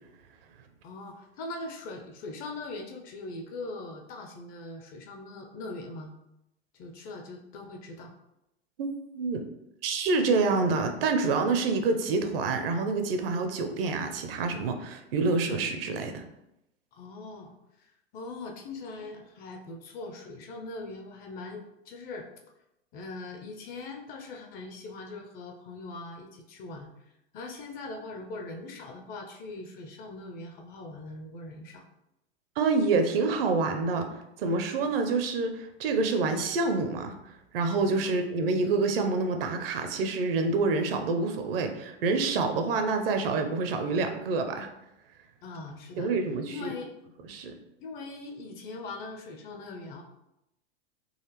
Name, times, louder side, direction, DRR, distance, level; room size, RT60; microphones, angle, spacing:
voice 1, 0.8-6.1 6.7-8.1 16.9-22.3 22.9-31.8 45.4-46.1 46.5-46.9 47.8-50.0, left 2 dB, 25° left, 2 dB, 0.4 m, -41 dB
voice 2, 8.8-9.4 9.8-16.2 32.6-34.1 34.4-37.2 37.5-44.7 46.0-46.7 47.3-47.5, right 3 dB, 55° right, 6 dB, 0.6 m, -27 dB
4.0 x 2.5 x 2.9 m, 0.87 s
hypercardioid pair, 100°, 34 cm